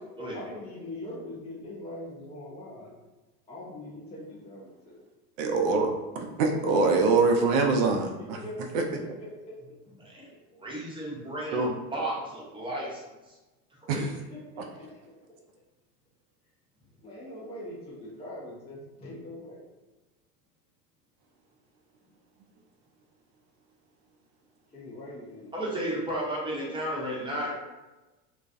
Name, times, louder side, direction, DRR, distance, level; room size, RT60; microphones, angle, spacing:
voice 1, 0.3-2.9 3.5-5.0 8.2-10.2 10.5-10.6 13.9-14.0 14.3-14.4 14.8-15.0 17.0-19.6 24.7-25.5, left 1 dB, 15° left, -6 dB, 0.5 m, -42 dB
voice 2, 5.4-8.4 8.7-8.8 11.5-11.7 13.9-14.1, right 3 dB, 55° right, 2 dB, 0.5 m, -24 dB
voice 3, 10.6-13.0 13.8-14.1 25.5-27.6, right 1 dB, 10° right, -6 dB, 0.9 m, -33 dB
2.3 x 2.2 x 2.5 m, 1.1 s
hypercardioid pair, 80°, 47 cm